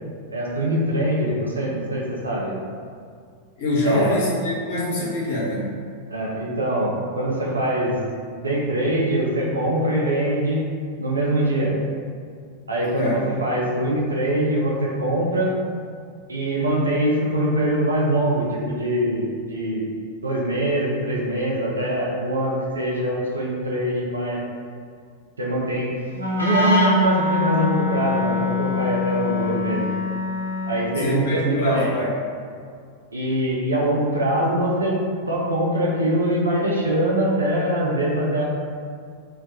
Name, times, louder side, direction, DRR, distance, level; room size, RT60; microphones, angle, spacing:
voice 1, 0.3-2.5 3.8-4.2 6.1-8.0 8.4-10.6 11.0-11.8 12.7-15.5 16.3-19.8 20.2-24.4 25.4-25.9 26.4-29.9 30.7-31.9 33.1-35.0 35.3-38.5, right 1 dB, 75° right, -4 dB, 0.4 m, -23 dB
voice 2, 3.6-5.8 13.0-13.1 31.0-32.1, left 1 dB, 55° left, -7 dB, 0.7 m, -24 dB
Wind instrument woodwind instrument, 26.1-31.0, left 3 dB, 80° left, 0.4 m, -23 dB
2.3 x 2.1 x 2.6 m, 2.1 s
figure-of-eight pair, 90°, 0 cm